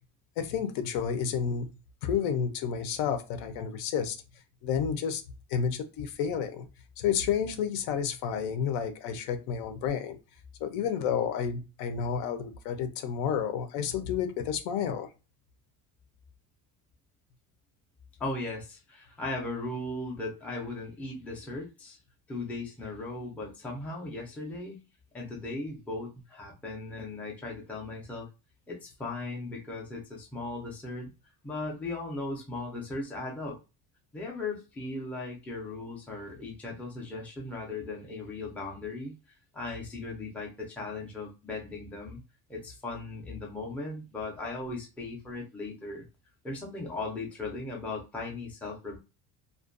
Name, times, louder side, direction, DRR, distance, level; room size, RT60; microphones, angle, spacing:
voice 1, 0.4-1.7 2.0-4.2 4.6-5.2 5.5-6.6 7.0-10.2 10.6-15.1, left 7 dB, 85° left, 8 dB, 0.7 m, -30 dB
voice 2, 18.2-22.0 22.3-24.8 25.1-28.3 28.7-31.1 31.4-33.6 34.1-39.1 39.5-42.2 42.5-46.0 46.4-49.0, left 2 dB, 5° left, -2 dB, 0.3 m, -37 dB
2.5 x 2.2 x 2.5 m, 0.29 s
cardioid pair, 165°, 38 cm